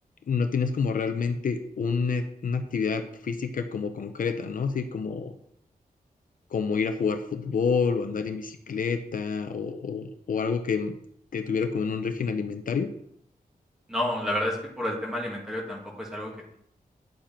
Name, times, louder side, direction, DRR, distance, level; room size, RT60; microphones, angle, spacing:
voice 1, 0.3-5.3 6.5-10.9 11.3-12.9, left 5 dB, 65° left, 7 dB, 0.7 m, -28 dB
voice 2, 13.9-16.6, left 1 dB, 5° right, -2 dB, 2.3 m, -30 dB
10.5 x 7.5 x 4.4 m, 0.71 s
wide cardioid pair, 165°, 15 cm